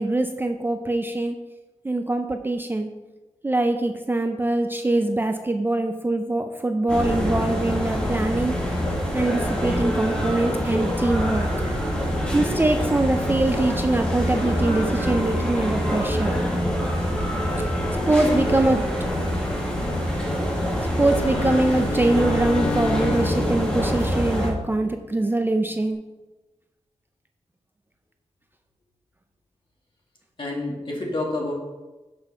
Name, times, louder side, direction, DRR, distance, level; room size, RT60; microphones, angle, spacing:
voice 1, 0.0-1.4 1.8-2.9 3.4-8.5 9.1-11.5 12.3-16.4 17.6-17.7 18.1-18.8 21.0-26.0, right 2 dB, 20° right, 5 dB, 0.4 m, -23 dB
sound 1, 6.9-24.5, equal, 10° left, 1.9 m, -25 dB
Bowed string instrument, 21.0-25.2, left 3 dB, 80° left, 1.7 m, -32 dB
voice 2, 30.4-31.5, left 2 dB, 45° left, -2 dB, 2.0 m, -29 dB
6.9 x 5.5 x 5.5 m, 1.1 s
wide cardioid pair, 150°, 12 cm